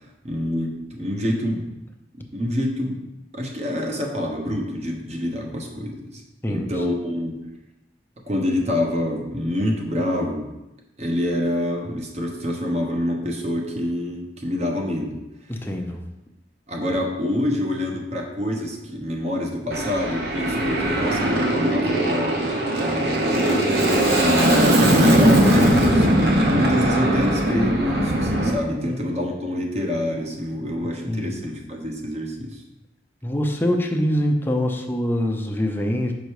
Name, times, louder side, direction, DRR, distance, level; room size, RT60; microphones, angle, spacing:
voice 1, 0.2-1.7 2.3-3.0 3.3-6.2 6.5-7.4 8.3-10.5 11.0-15.2 16.7-22.4 22.7-26.2 26.5-32.6, left 1 dB, 40° right, 1 dB, 1.1 m, -26 dB
voice 2, 15.5-16.0 28.8-29.1 31.0-31.4 33.2-36.1, equal, 10° left, 3 dB, 0.6 m, -24 dB
Aircraft, 19.7-28.5, right 1 dB, 60° right, 1.0 m, -19 dB
5.5 x 5.2 x 4.8 m, 0.94 s
head